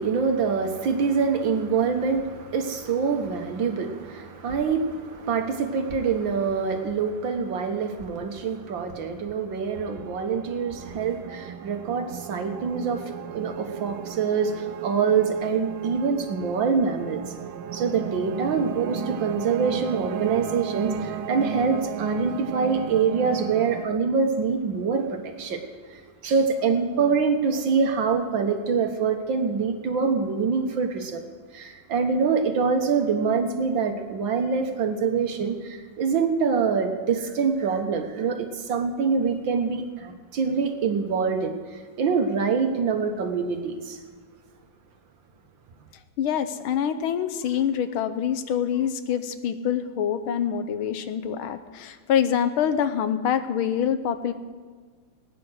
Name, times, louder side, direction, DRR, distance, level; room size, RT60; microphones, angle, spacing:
voice 1, 0.0-17.2 17.7-25.6 25.9-31.2 31.5-41.6 42.0-44.0, right 5 dB, 70° right, 5 dB, 1.9 m, -25 dB
sound 1, 9.7-23.9, right 7 dB, 90° right, 1.6 m, -35 dB
voice 2, 46.2-54.3, left 8 dB, 85° left, 11 dB, 1.7 m, -25 dB
20.0 x 9.8 x 6.4 m, 1.5 s
omnidirectional pair, 2.2 m